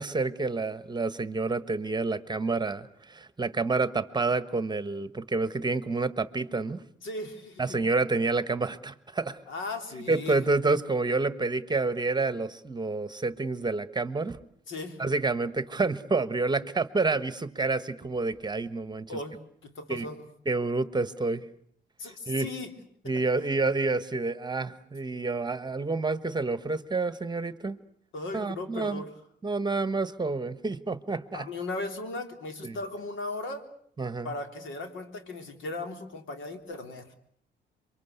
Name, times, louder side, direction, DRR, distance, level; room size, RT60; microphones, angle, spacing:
voice 1, 0.0-6.8 7.6-9.4 10.1-14.4 15.0-19.1 19.9-20.1 20.4-21.4 22.3-22.5 23.0-27.8 28.3-29.0 29.4-31.5 32.6-32.8 34.0-34.3, right 3 dB, 20° right, 13 dB, 1.3 m, -28 dB
voice 2, 7.0-7.8 9.5-10.4 14.7-15.0 19.1-20.3 22.0-22.8 28.1-29.1 31.3-33.7 34.2-37.1, left 2 dB, 75° left, 6 dB, 3.8 m, -37 dB
27.0 x 24.0 x 8.2 m, 0.66 s
cardioid pair, 90°, 20 cm